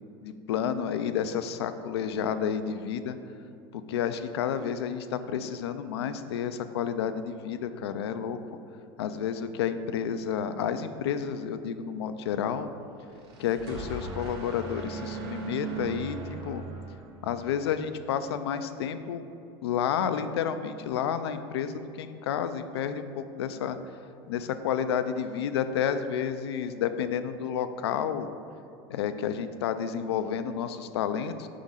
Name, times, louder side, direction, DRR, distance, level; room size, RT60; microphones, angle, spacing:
voice 1, 0.2-3.2 3.7-8.4 9.0-12.7 13.4-16.2 16.4-16.6 17.2-19.2 19.6-23.8 24.3-28.3 28.9-31.5, left 8 dB, 85° left, 10 dB, 0.4 m, -30 dB
sound 1, 13.0-17.6, right 5 dB, 80° right, 1.1 m, -38 dB
5.2 x 3.7 x 5.5 m, 2.7 s
hypercardioid pair, 100°, 13 cm